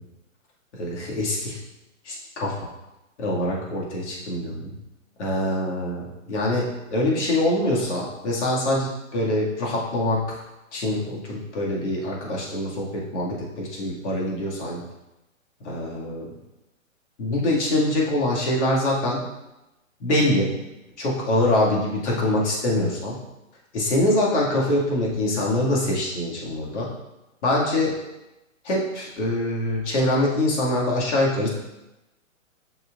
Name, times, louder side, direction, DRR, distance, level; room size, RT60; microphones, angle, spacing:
voice 1, 0.8-1.6 2.0-2.7 3.2-4.8 5.2-10.4 10.7-14.8 15.6-16.3 17.2-19.2 20.0-20.5 21.0-23.2 23.7-26.9 27.4-28.0 28.6-31.5, left 1 dB, 60° left, -4 dB, 2.3 m, -24 dB
6.6 x 6.3 x 2.5 m, 0.97 s
hypercardioid pair, 135°, 40 cm